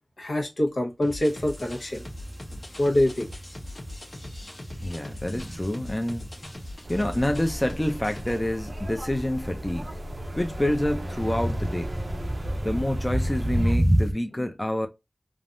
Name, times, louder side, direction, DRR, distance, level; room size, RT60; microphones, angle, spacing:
voice 1, 0.2-2.0 2.8-3.3, left 1 dB, 80° left, 1.2 m, -25 dB
sound 1, 1.0-8.4, left 1 dB, 50° left, 1.0 m, -41 dB
sound 2, 1.3-9.4 9.8-14.1, equal, 30° right, 0.4 m, -31 dB
voice 2, 4.8-6.3 6.9-10.0 10.4-11.9 12.6-14.9, left 1 dB, 20° left, 0.5 m, -27 dB
sound 3, 6.8-13.8, right 1 dB, 80° right, 0.6 m, -37 dB
3.4 x 2.0 x 2.5 m
wide cardioid pair, 50°, 0 cm